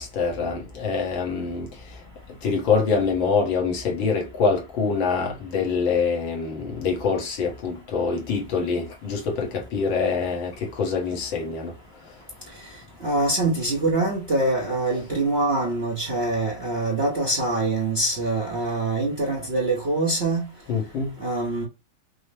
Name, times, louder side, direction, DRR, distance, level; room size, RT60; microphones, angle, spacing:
voice 1, 0.0-1.7 2.4-11.7 20.7-21.1, left 5 dB, 70° left, 1.9 m, -25 dB
voice 2, 13.0-20.5 21.2-21.6, right 2 dB, 50° right, 0.8 m, -24 dB
6.0 x 2.1 x 3.3 m
omnidirectional pair, 2.2 m